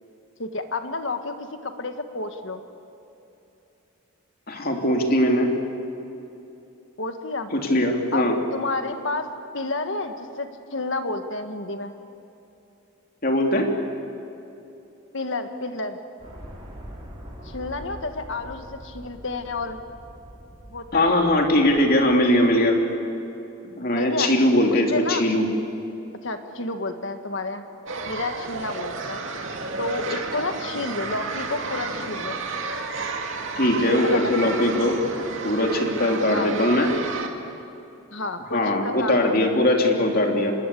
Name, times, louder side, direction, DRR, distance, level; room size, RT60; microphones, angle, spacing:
voice 1, 0.4-2.6 7.0-7.5 8.1-9.3 9.5-11.9 15.1-16.0 17.4-19.8 20.7-21.3 23.9-24.3 24.7-25.3 26.2-27.6 28.1-29.2 29.8-32.4 33.8-34.7 36.3-36.5 38.1-39.4, left 3 dB, 65° left, 7 dB, 1.7 m, -30 dB
voice 2, 4.5-5.5 7.5-8.4 13.2-13.7 20.9-22.8 23.7-25.5 33.6-35.0 35.4-36.9 38.5-40.5, left 1 dB, 45° left, 2 dB, 3.0 m, -20 dB
sound 1, 16.2-22.4, equal, 30° right, 6.4 m, -43 dB
sound 2, 27.9-37.3, right 3 dB, 65° right, 2.4 m, -31 dB
26.0 x 21.5 x 8.6 m, 2.9 s
head